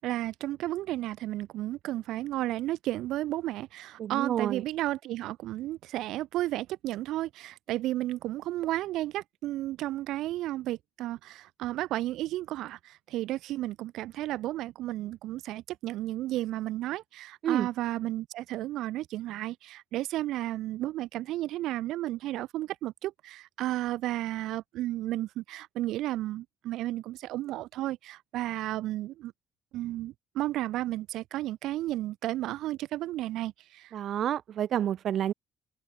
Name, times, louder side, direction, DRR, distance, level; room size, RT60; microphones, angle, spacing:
voice 1, 0.0-29.3 29.7-34.0, right 15 dB, 80° right, 6.9 m, -33 dB
voice 2, 4.0-4.6 17.4-17.7 33.9-35.3, right 10 dB, 50° right, 3.1 m, -29 dB
cardioid pair, 175°, 0 cm